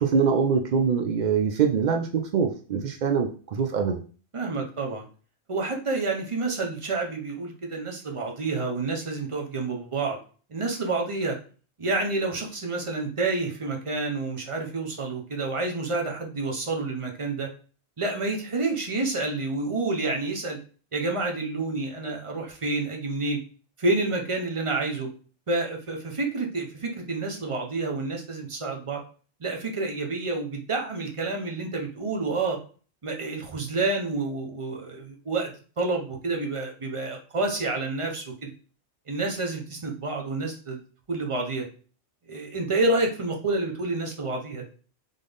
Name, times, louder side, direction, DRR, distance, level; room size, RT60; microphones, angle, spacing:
voice 1, 0.0-4.0, right 6 dB, 75° right, 3 dB, 0.4 m, -24 dB
voice 2, 4.3-5.1 5.5-10.2 10.5-11.4 11.8-17.5 18.0-20.6 20.9-23.4 23.8-25.1 25.5-29.0 29.4-32.6 33.0-35.5 35.8-38.5 39.1-40.8 41.1-41.7 42.3-44.6, right 3 dB, 30° right, 1 dB, 0.8 m, -29 dB
3.8 x 3.7 x 3.4 m, 0.39 s
omnidirectional pair, 1.3 m